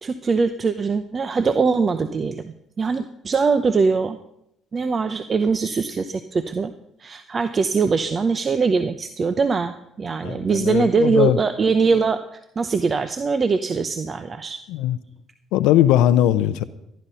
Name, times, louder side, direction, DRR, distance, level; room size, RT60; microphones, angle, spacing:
voice 1, 0.0-4.2 4.7-6.7 7.0-14.6, right 4 dB, 40° right, 11 dB, 0.8 m, -22 dB
voice 2, 10.2-11.4 14.7-15.0 15.5-16.6, left 12 dB, 75° left, 13 dB, 0.6 m, -19 dB
15.0 x 10.5 x 5.6 m, 0.79 s
hypercardioid pair, 55°, 0 cm